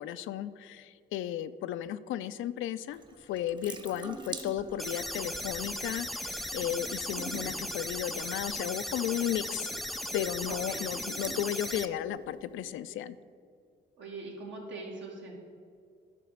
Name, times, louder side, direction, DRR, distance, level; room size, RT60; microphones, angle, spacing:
voice 1, 0.0-9.7 10.1-13.2, left 11 dB, 80° left, 13 dB, 0.4 m, -34 dB
Water tap faucet / Sink (filling or washing) / Drip, 2.9-12.7, right 3 dB, 25° right, 0.8 m, -47 dB
sound 1, 4.8-11.9, equal, ahead, 0.4 m, -37 dB
voice 2, 10.5-11.1 14.0-15.3, right 3 dB, 70° right, -1 dB, 2.2 m, -42 dB
11.0 x 3.8 x 6.5 m, 2.3 s
cardioid pair, 90°, 20 cm